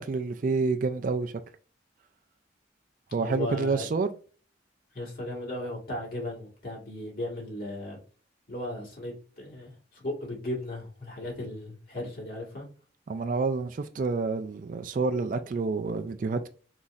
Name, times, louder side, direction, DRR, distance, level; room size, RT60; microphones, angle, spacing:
voice 1, 0.0-1.3 3.1-4.1 13.1-16.5, right 4 dB, 45° right, 0.3 m, -28 dB
voice 2, 3.2-3.9 4.9-8.0 8.5-12.7, left 1 dB, 50° left, 1.8 m, -36 dB
4.0 x 4.0 x 2.4 m
head